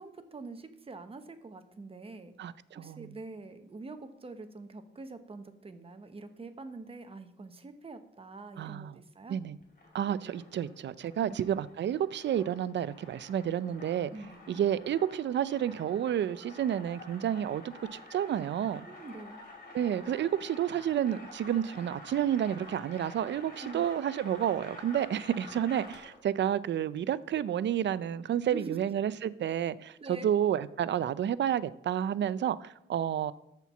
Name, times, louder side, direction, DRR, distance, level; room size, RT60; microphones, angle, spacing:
voice 1, 0.0-2.3 2.7-9.4 11.2-11.5 14.1-14.4 18.8-19.4 23.6-23.9 28.4-28.8 30.0-30.3, right 3 dB, 30° right, 8 dB, 0.9 m, -45 dB
voice 2, 2.4-3.1 8.6-8.9 9.3-9.6 9.9-14.1 14.5-17.6 17.9-18.8 19.7-33.3, right 10 dB, 65° right, 17 dB, 0.4 m, -30 dB
sound 1, 9.6-26.3, left 2 dB, 45° left, 3.5 m, -50 dB
13.0 x 4.5 x 7.0 m, 0.83 s
wide cardioid pair, 130°, 20 cm